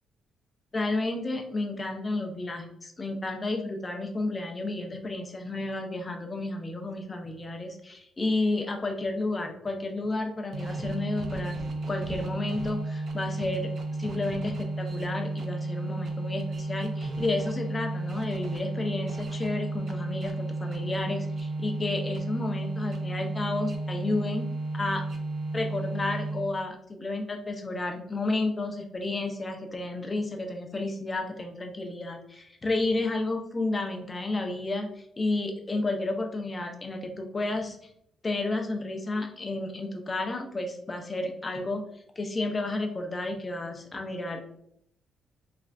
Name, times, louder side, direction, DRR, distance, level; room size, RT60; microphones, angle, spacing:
voice 1, 0.7-11.6 11.9-13.7 14.0-24.5 24.7-25.0 25.5-37.8 38.2-41.8 42.2-44.4, left 2 dB, 25° left, 4 dB, 0.5 m, -31 dB
sound 1, 10.5-26.7, right 2 dB, 60° right, 0.5 m, -33 dB
3.2 x 2.4 x 2.4 m, 0.71 s
cardioid pair, 90°, 0 cm